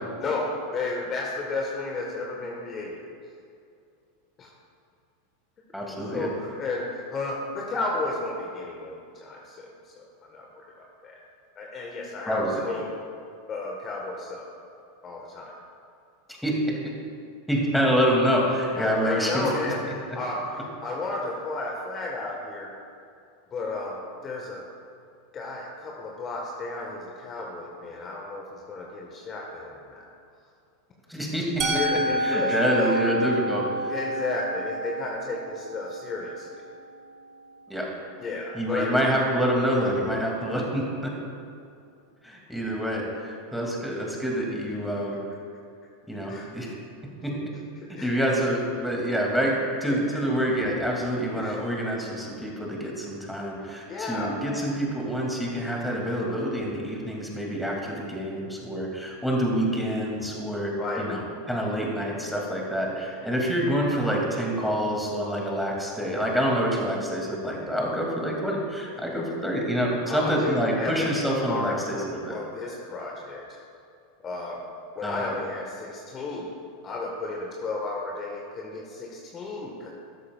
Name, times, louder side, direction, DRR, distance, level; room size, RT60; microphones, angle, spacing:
voice 1, 0.2-3.0 4.4-4.5 6.1-10.0 10.3-11.2 11.6-12.4 12.6-12.9 13.5-14.5 15.0-15.5 18.7-19.8 20.1-22.7 23.5-24.6 25.3-30.1 31.7-33.0 33.9-36.5 38.2-39.0 45.1-45.2 46.3-46.5 47.9-48.1 49.9-50.2 51.4-51.6 53.6-54.3 60.8-61.1 70.1-73.6 74.2-74.6 74.9-76.5 76.8-79.9, left 3 dB, 30° left, -1 dB, 1.4 m, -33 dB
voice 2, 5.7-6.3 12.3-12.6 16.4-16.5 17.5-19.5 31.1-31.6 32.2-33.9 37.7-37.9 38.5-41.1 42.2-45.2 46.1-46.7 47.2-47.3 47.9-61.2 61.5-72.4 75.0-75.2, equal, ahead, -2 dB, 2.4 m, -27 dB
Musical instrument, 31.6-37.5, right 1 dB, 40° right, 1.6 m, -30 dB
13.0 x 12.5 x 2.4 m, 2.5 s
figure-of-eight pair, 85°, 0 cm